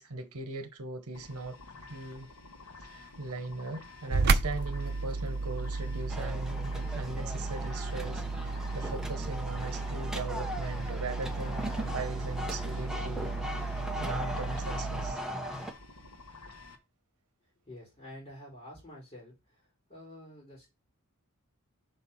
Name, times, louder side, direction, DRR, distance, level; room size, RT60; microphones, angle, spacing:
voice 1, 0.0-1.6 1.9-2.3 2.8-13.3 14.0-15.2, right 3 dB, 75° right, 1.0 m, -39 dB
sound 1, 1.1-16.8, left 3 dB, 75° left, 1.3 m, -51 dB
sound 2, 4.1-15.2, right 3 dB, 50° right, 0.5 m, -33 dB
sound 3, 6.1-15.7, equal, 5° right, 0.9 m, -39 dB
voice 2, 17.6-19.6 19.9-20.7, left 1 dB, 30° left, 4.3 m, -48 dB
5.2 x 4.4 x 5.6 m
head